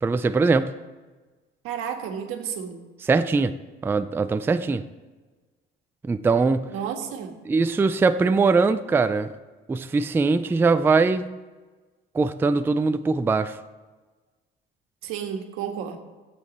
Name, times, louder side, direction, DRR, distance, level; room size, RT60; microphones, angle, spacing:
voice 1, 0.0-0.7 3.1-3.6 3.8-4.8 6.0-6.7 7.5-9.3 9.7-11.3 12.1-13.6, right 4 dB, 10° right, 11 dB, 0.3 m, -21 dB
voice 2, 1.6-2.8 6.7-7.4 15.0-16.0, right 8 dB, 85° right, 4 dB, 1.5 m, -32 dB
15.5 x 8.6 x 4.1 m, 1.3 s
cardioid pair, 140°, 21 cm